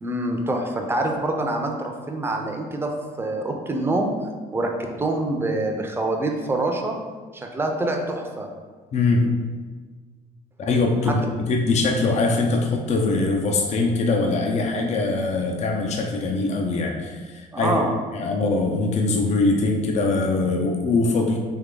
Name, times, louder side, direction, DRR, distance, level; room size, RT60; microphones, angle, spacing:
voice 1, 0.0-4.1 4.5-7.0 7.3-8.5 11.1-11.2 17.5-17.9, right 2 dB, 15° right, 2 dB, 0.6 m, -25 dB
voice 2, 8.9-9.3 10.6-11.2 11.5-17.8 18.1-21.4, left 3 dB, 40° left, 2 dB, 0.5 m, -22 dB
3.5 x 3.1 x 3.8 m, 1.4 s
cardioid pair, 110°, 17 cm